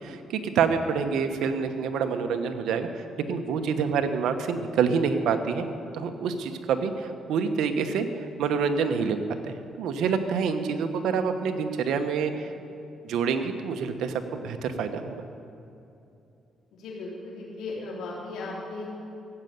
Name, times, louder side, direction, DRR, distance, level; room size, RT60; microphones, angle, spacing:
voice 1, 0.0-5.6 5.9-9.2 9.4-12.5 13.0-15.2, right 6 dB, 80° right, 7 dB, 1.1 m, -27 dB
voice 2, 16.7-19.0, left 3 dB, 80° left, -6 dB, 4.0 m, -37 dB
15.5 x 8.0 x 9.4 m, 2.8 s
cardioid pair, 90°, 0 cm